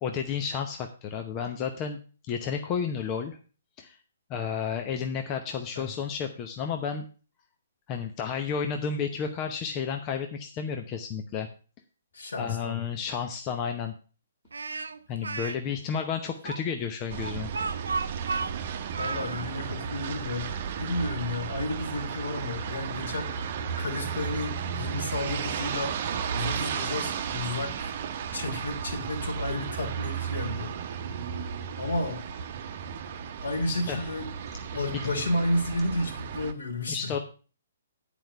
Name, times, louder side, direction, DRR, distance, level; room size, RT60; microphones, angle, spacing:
voice 1, 0.0-2.0 2.3-3.4 3.8-4.0 4.3-7.1 7.9-11.5 12.4-13.9 15.1-17.5 33.7-34.0 34.9-35.1 36.9-37.2, left 6 dB, 30° left, 5 dB, 0.9 m, -32 dB
voice 2, 12.1-12.8 19.0-20.5 20.8-23.3 23.8-27.9 28.3-30.7 31.8-32.2 33.4-34.3 34.7-37.1, left 2 dB, 70° left, 2 dB, 3.0 m, -32 dB
Speech, 14.5-15.6 16.4-19.5, right 4 dB, 75° right, 0.6 m, -33 dB
sound 1, 17.1-36.5, right 7 dB, 45° right, 0.9 m, -34 dB
9.1 x 5.1 x 6.7 m, 0.37 s
figure-of-eight pair, 125°, 0 cm